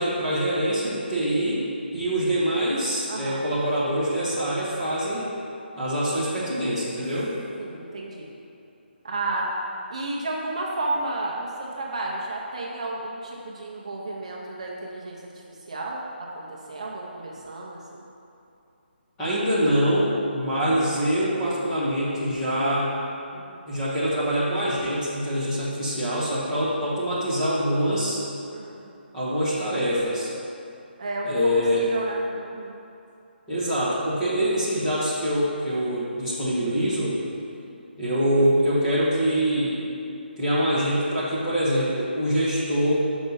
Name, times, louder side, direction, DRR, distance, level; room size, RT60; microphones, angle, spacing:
voice 1, 0.0-1.6 1.9-5.2 5.8-7.3 19.2-22.9 23.7-28.2 29.1-30.3 31.2-31.8 33.5-37.1 38.0-39.8 40.4-42.9, equal, 5° left, -11 dB, 1.0 m, -24 dB
voice 2, 3.1-3.4 7.6-8.3 9.0-9.5 9.9-16.0 16.3-18.0 23.3-23.7 28.5-28.9 31.0-31.3 31.8-32.8, right 2 dB, 35° right, -3 dB, 0.8 m, -32 dB
6.0 x 5.3 x 5.4 m, 2.7 s
hypercardioid pair, 180°, 6 cm